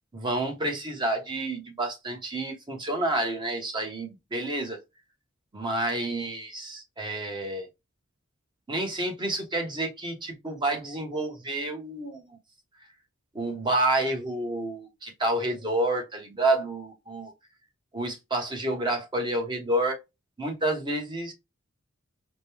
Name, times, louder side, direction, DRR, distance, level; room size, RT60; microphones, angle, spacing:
voice 1, 0.1-4.8 5.5-7.7 8.7-12.2 13.3-17.3 17.9-20.0 20.4-21.3, right 2 dB, 20° right, 1.1 m, -29 dB
5.1 x 2.2 x 3.4 m
head